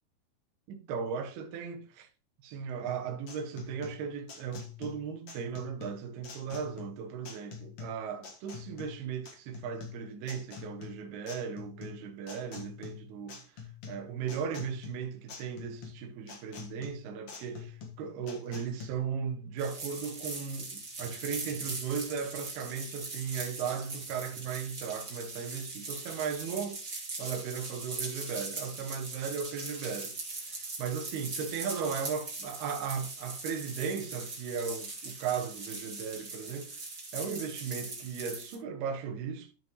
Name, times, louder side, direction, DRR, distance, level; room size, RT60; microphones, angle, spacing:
voice 1, 0.7-2.1 2.4-26.8 27.2-36.9 37.1-39.5, right 6 dB, 85° right, 2.8 m, -37 dB
sound 1, 2.9-18.9, left 6 dB, 50° left, 1.9 m, -46 dB
sound 2, 19.6-38.5, right 3 dB, 25° right, 2.1 m, -41 dB
13.5 x 5.3 x 3.1 m
omnidirectional pair, 4.4 m